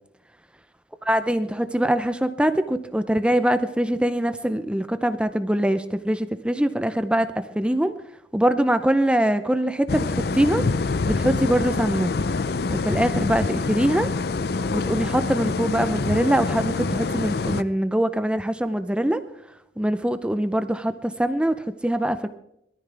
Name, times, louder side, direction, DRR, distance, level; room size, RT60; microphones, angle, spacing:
voice 1, 1.1-7.9 8.3-10.6 11.1-12.1 12.7-14.1 14.7-19.2 19.8-22.3, right 1 dB, 5° right, 11 dB, 0.5 m, -23 dB
sound 1, 9.9-17.6, left 3 dB, 60° left, 0.5 m, -26 dB
22.0 x 13.5 x 3.4 m, 0.79 s
head